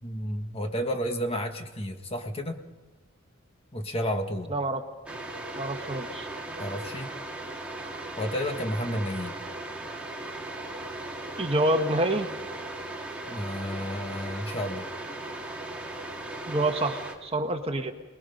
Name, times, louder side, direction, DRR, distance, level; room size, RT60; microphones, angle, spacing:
voice 1, 0.0-2.6 3.7-4.5 6.6-7.1 8.2-9.4 13.3-14.9, equal, 30° left, 5 dB, 1.7 m, -31 dB
voice 2, 4.5-4.8 5.6-6.3 11.4-12.3 16.5-17.9, right 1 dB, 30° right, 5 dB, 1.5 m, -27 dB
sound 1, 5.1-17.2, right 2 dB, 5° right, 2.5 m, -37 dB
30.0 x 21.0 x 5.4 m, 1.2 s
head